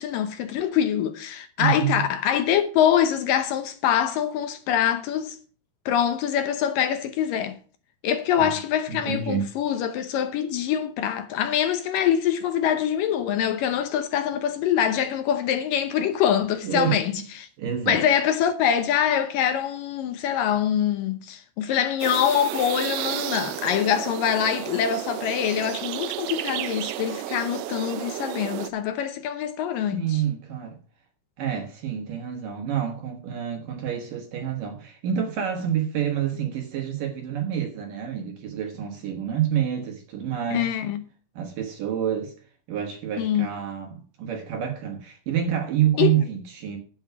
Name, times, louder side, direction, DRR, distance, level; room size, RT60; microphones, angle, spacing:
voice 1, 0.0-5.4 5.9-7.6 8.0-17.5 17.9-30.2 40.5-41.1 43.2-43.5 46.0-46.2, left 9 dB, 70° left, 2.3 m, -24 dB
voice 2, 1.6-2.0 8.4-8.5 8.9-9.5 16.6-17.0 17.6-18.0 29.9-30.8 31.4-40.7 41.4-42.3 42.7-46.8, right 9 dB, 65° right, 2.9 m, -28 dB
sound 1, 22.0-28.7, right 14 dB, 80° right, 2.6 m, -32 dB
9.4 x 8.8 x 5.8 m
omnidirectional pair, 4.4 m